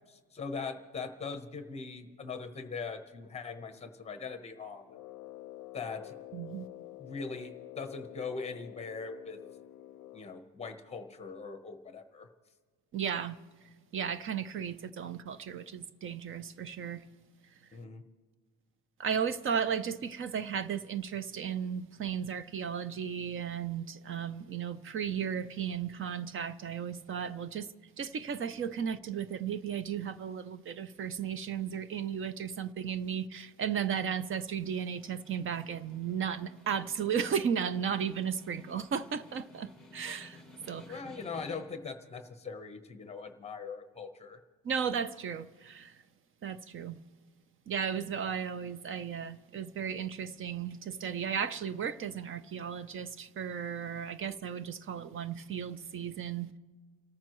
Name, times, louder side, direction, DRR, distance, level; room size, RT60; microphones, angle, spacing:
voice 1, 0.1-4.8 5.7-6.2 7.0-9.4 10.1-12.3 17.7-18.0 40.9-44.4, left 4 dB, 20° left, 1.0 m, -41 dB
Brass instrument, 4.8-10.4, left 14 dB, 75° left, 0.5 m, -48 dB
voice 2, 6.3-6.7 12.9-13.4 13.9-17.0 19.0-27.7 28.0-40.4 40.7-41.0 44.6-45.9 46.4-47.0 47.7-56.6, right 7 dB, 40° right, 0.5 m, -35 dB
Snare drum, 34.4-41.9, left 2 dB, ahead, 1.3 m, -55 dB
29.5 x 14.0 x 3.1 m
cardioid pair, 180°, 32 cm